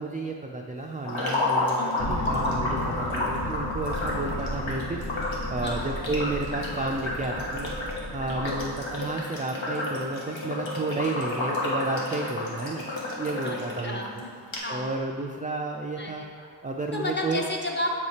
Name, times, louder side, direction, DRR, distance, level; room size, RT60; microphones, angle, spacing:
voice 1, 0.0-7.8 8.1-12.8 13.2-14.2 14.7-16.2 16.6-17.4, right 2 dB, 20° right, 1 dB, 0.3 m, -32 dB
sound 1, 1.0-13.8 14.2-14.3 14.5-14.6, left 2 dB, 80° left, 1.3 m, -31 dB
voice 2, 1.8-2.3 5.6-5.9 8.4-8.8 13.4-15.0 16.0-16.5 16.9-17.9, left 1 dB, 25° left, 0 dB, 0.9 m, -33 dB
sound 2, 2.0-9.1, left 1 dB, 50° left, 1.2 m, -35 dB
7.1 x 4.1 x 4.9 m, 2.2 s
wide cardioid pair, 80°, 46 cm